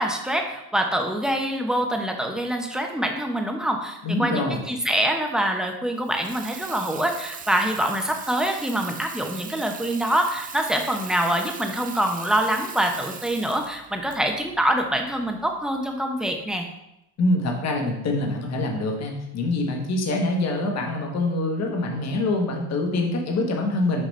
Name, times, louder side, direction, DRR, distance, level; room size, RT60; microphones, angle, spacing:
voice 1, 0.0-16.7, right 1 dB, ahead, 3 dB, 0.8 m, -25 dB
voice 2, 4.0-4.6 17.2-24.1, left 2 dB, 40° left, 1 dB, 1.3 m, -25 dB
Water tap faucet / Sink (filling or washing), 6.0-15.6, right 7 dB, 20° right, 0.4 m, -40 dB
6.6 x 4.9 x 3.2 m, 0.86 s
supercardioid pair, 105°, 42 cm